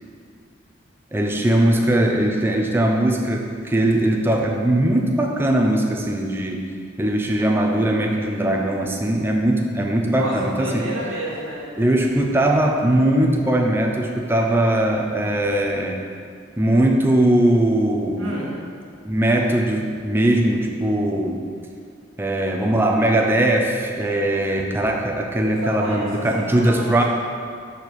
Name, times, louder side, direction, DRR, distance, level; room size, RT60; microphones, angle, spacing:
voice 1, 1.1-6.6 7.0-10.9 11.8-16.0 16.6-18.4 19.0-21.4 22.2-27.0, right 1 dB, 10° right, 1 dB, 0.4 m, -20 dB
voice 2, 10.1-11.7 18.2-18.6 25.6-26.1 26.3-27.0, equal, 85° right, -5 dB, 1.6 m, -30 dB
6.7 x 4.4 x 4.1 m, 2.2 s
head